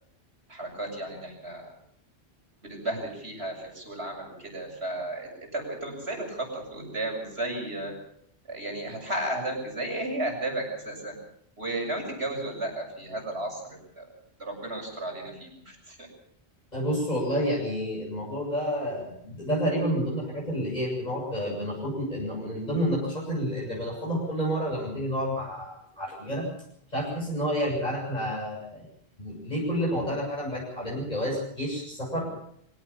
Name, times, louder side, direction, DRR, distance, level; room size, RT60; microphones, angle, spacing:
voice 1, 0.5-1.7 2.6-7.9 8.4-11.2 11.6-14.1 14.4-16.1, right 1 dB, 70° right, 2 dB, 7.4 m, -34 dB
voice 2, 16.7-26.5 26.9-28.8 29.2-32.4, equal, 40° left, -4 dB, 7.8 m, -29 dB
24.5 x 17.5 x 7.2 m, 0.70 s
omnidirectional pair, 1.1 m